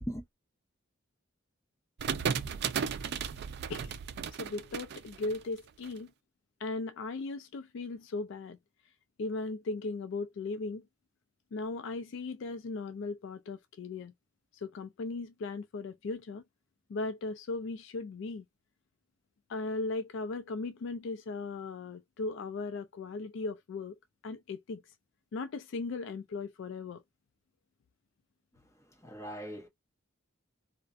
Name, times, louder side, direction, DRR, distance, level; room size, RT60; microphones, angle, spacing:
sound 1, 2.0-5.9, right 7 dB, 55° right, 0.4 m, -35 dB
voice 1, 4.4-6.1 6.6-8.6 9.2-10.8 11.5-14.1 14.6-16.4 16.9-18.4 19.5-24.0 24.2-24.8 25.3-27.0, left 3 dB, 65° left, 0.4 m, -37 dB
voice 2, 28.8-29.7, equal, 15° left, 0.9 m, -40 dB
2.4 x 2.1 x 2.4 m
head